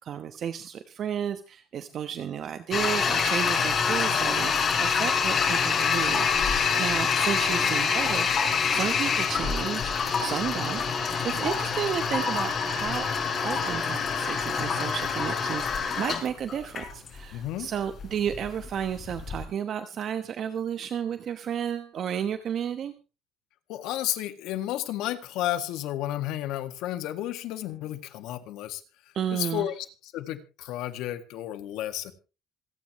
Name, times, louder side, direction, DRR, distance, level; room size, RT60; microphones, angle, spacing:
voice 1, 0.0-9.9 10.2-13.1 13.4-22.9 29.1-29.7, right 8 dB, 45° right, 1.1 m, -32 dB
Toilet flush, 2.7-19.4, left 6 dB, 35° left, 4.2 m, -26 dB
voice 2, 17.3-17.7 23.7-32.1, left 13 dB, 75° left, 1.8 m, -32 dB
26.5 x 9.3 x 3.1 m
cardioid pair, 135°, 0 cm